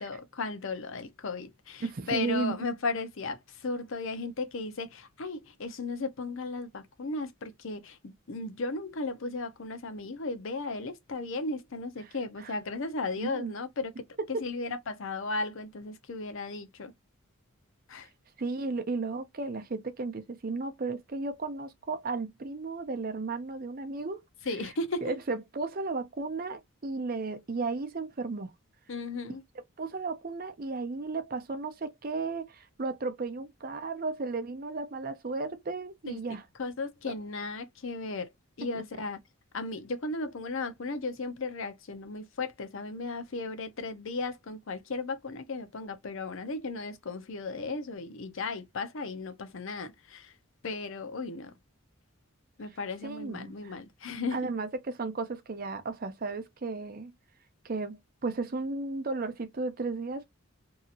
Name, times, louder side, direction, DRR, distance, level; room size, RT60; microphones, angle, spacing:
voice 1, 0.0-16.9 17.9-18.1 24.5-25.2 28.9-29.4 36.1-36.2 36.6-38.3 38.6-39.2 39.5-50.4 50.6-51.5 52.6-54.4, left 3 dB, 65° left, 0.6 m, -35 dB
voice 2, 1.8-2.5 12.4-12.5 13.2-13.5 14.3-14.4 18.4-24.2 25.0-28.5 29.8-36.4 53.0-53.7 54.3-57.1 57.6-60.2, right 3 dB, 45° right, 0.5 m, -34 dB
2.8 x 2.6 x 2.4 m
head